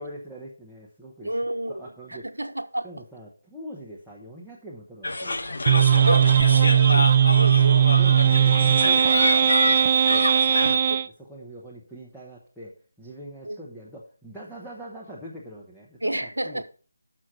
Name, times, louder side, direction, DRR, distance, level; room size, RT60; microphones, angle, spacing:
voice 1, 0.0-1.4 1.7-2.4 2.8-5.4 7.7-16.6, equal, ahead, 1.0 m, -43 dB
voice 2, 1.2-2.9 6.0-7.9 10.9-11.0 13.4-13.6 16.0-16.6, right 1 dB, 80° right, 1.0 m, -30 dB
sound 1, 5.0-10.8, left 2 dB, 60° left, 1.1 m, -27 dB
sound 2, 5.7-11.1, right 9 dB, 30° right, 0.3 m, -18 dB
6.2 x 6.1 x 5.9 m
figure-of-eight pair, 160°, 0 cm